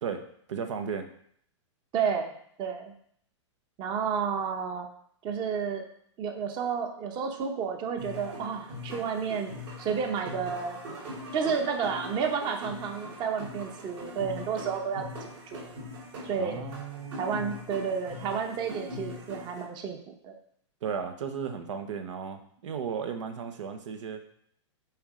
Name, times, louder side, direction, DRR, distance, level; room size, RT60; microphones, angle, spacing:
voice 1, 0.5-1.1 16.4-17.2 20.8-24.2, right 6 dB, 75° right, 7 dB, 1.0 m, -35 dB
voice 2, 1.9-2.3 2.6-2.9 3.8-4.9 5.2-5.8 6.2-9.5 9.8-10.8 11.3-15.0 15.5-15.6 16.2-16.7 17.2-20.4, right 6 dB, 30° right, 5 dB, 1.0 m, -31 dB
sound 1, 8.0-19.6, left 1 dB, 60° right, 3.4 m, -41 dB
7.0 x 4.5 x 4.9 m, 0.66 s
hypercardioid pair, 140°, 16 cm